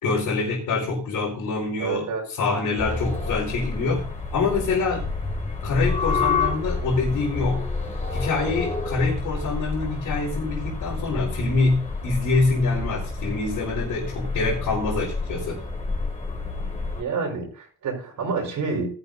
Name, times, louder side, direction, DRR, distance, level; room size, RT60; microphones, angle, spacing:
voice 1, 0.0-2.1 2.4-4.1 4.3-5.1 5.6-7.7 8.1-15.6, left 3 dB, 75° left, -5 dB, 4.4 m, -25 dB
voice 2, 1.8-2.3 16.9-18.9, right 4 dB, 70° right, 1 dB, 4.6 m, -28 dB
sound 1, 2.8-17.0, left 3 dB, 20° left, 3.8 m, -29 dB
19.0 x 11.0 x 2.7 m, 0.39 s
cardioid pair, 85°, 33 cm